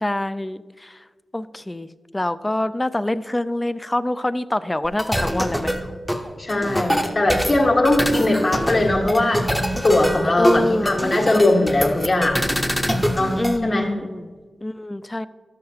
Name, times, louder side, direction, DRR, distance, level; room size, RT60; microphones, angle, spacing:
voice 1, 0.0-1.0 1.3-5.7 8.2-8.8 10.4-10.9 13.4-14.3 14.6-15.3, left 1 dB, 20° left, 14 dB, 0.3 m, -25 dB
sound 1, 4.8-13.6, equal, ahead, 0.7 m, -24 dB
voice 2, 6.4-9.5 9.8-12.4 13.1-13.9, left 2 dB, 50° left, -1 dB, 1.5 m, -20 dB
12.5 x 6.7 x 2.8 m, 1.5 s
cardioid pair, 55°, 0 cm